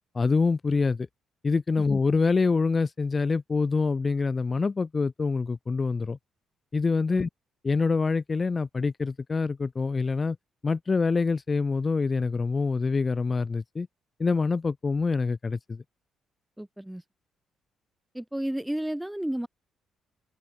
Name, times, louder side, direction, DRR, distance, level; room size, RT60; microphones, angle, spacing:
voice 1, 0.1-1.1 1.4-6.2 6.7-7.3 7.6-10.4 10.6-13.9 14.2-15.8, left 4 dB, 30° left, 0.4 m, -25 dB
voice 2, 16.6-17.0 18.1-19.5, right 1 dB, 5° right, 0.7 m, -32 dB
cardioid pair, 90°, 0 cm